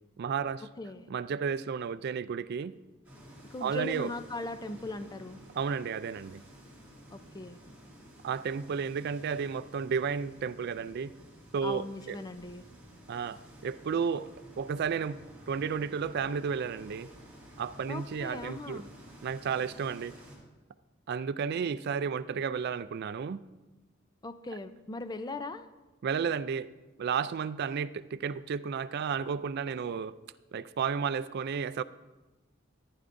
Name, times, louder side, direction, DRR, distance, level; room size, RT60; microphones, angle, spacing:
voice 1, 0.2-0.7 1.1-2.7 3.6-4.1 5.5-6.4 8.2-11.1 11.5-12.2 13.1-14.3 14.6-15.2 15.5-17.1 17.6-18.8 19.2-20.1 21.1-23.4 26.0-26.7 27.0-30.1 30.5-31.8, right 6 dB, 50° right, 14 dB, 0.3 m, -32 dB
sound 1, 3.0-20.4, equal, 5° right, 3.0 m, -52 dB
voice 2, 3.5-5.4 7.1-7.6 11.6-12.6 17.9-18.9 24.2-25.7, left 2 dB, 20° left, 11 dB, 0.4 m, -39 dB
14.5 x 9.6 x 2.6 m, 1.1 s
head